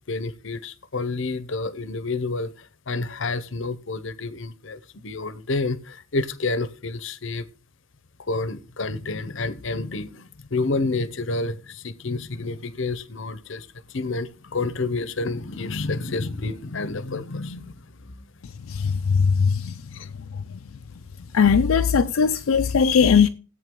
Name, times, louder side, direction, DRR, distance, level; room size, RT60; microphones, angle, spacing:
voice 1, 0.1-7.4 8.2-18.1 19.9-20.4, left 3 dB, 60° left, 0.8 m, -29 dB
voice 2, 18.7-19.7 21.3-23.3, left 6 dB, 80° left, 0.4 m, -19 dB
14.0 x 8.4 x 3.7 m
head